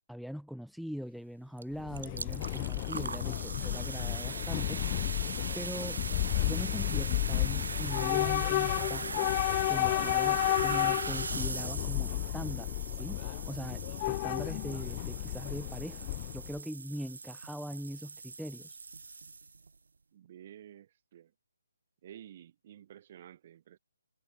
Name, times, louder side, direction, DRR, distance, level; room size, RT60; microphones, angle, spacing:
voice 1, 0.0-4.8 5.5-6.0 6.4-9.3 9.7-18.8, equal, ahead, 0.9 m, -41 dB
sound 1, 1.6-1.7 1.9-19.7, right 4 dB, 75° right, 1.2 m, -40 dB
Train / Subway metro underground, 1.7-16.6, left 19 dB, 25° left, 0.6 m, -32 dB
voice 2, 20.1-21.3 22.0-23.8, right 11 dB, 35° right, 5.5 m, -52 dB
hypercardioid pair, 155°, 0 cm